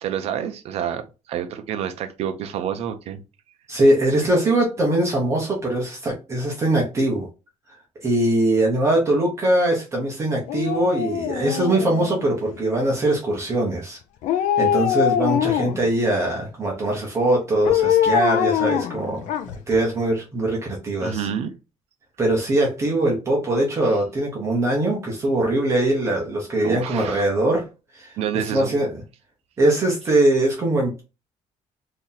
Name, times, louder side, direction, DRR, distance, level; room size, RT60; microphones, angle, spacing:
voice 1, 0.0-3.2 21.0-21.5 26.6-27.2 28.2-28.7, right 9 dB, 55° right, 0.5 m, -28 dB
voice 2, 3.7-7.3 8.0-14.0 14.6-19.2 19.7-21.3 22.2-27.6 27.9-28.1 28.5-28.9 29.6-31.0, right 1 dB, 20° right, 0.8 m, -21 dB
Dog, 10.5-12.5 14.2-15.9 17.6-19.8 20.1-20.2, left 10 dB, 75° left, 0.5 m, -23 dB
2.9 x 2.7 x 3.8 m
cardioid pair, 180°, 13 cm